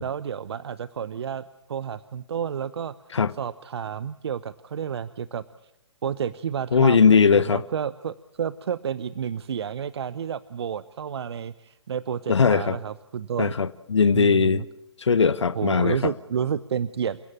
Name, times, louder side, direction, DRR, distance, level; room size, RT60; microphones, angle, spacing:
voice 1, 0.0-1.4 1.7-2.9 3.3-5.7 6.0-13.5 14.1-14.7 15.5-17.2, right 8 dB, 65° right, 16 dB, 0.9 m, -30 dB
voice 2, 6.7-7.6 12.3-12.8 13.4-14.6 15.0-16.1, left 5 dB, 85° left, 15 dB, 0.9 m, -19 dB
28.5 x 16.5 x 7.5 m, 0.86 s
hypercardioid pair, 135°, 15 cm